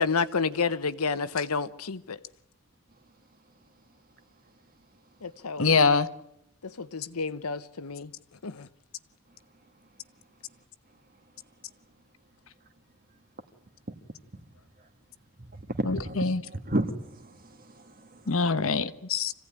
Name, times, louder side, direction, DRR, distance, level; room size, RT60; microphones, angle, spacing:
voice 1, 0.0-2.2 5.2-5.7 6.6-8.1 8.4-8.7, left 5 dB, 85° left, 1.0 m, -30 dB
voice 2, 5.6-6.1 15.8-16.4 18.3-19.3, left 4 dB, 65° left, 1.0 m, -24 dB
voice 3, 15.4-18.4, right 1 dB, 40° right, 1.6 m, -33 dB
26.0 x 16.5 x 9.9 m
head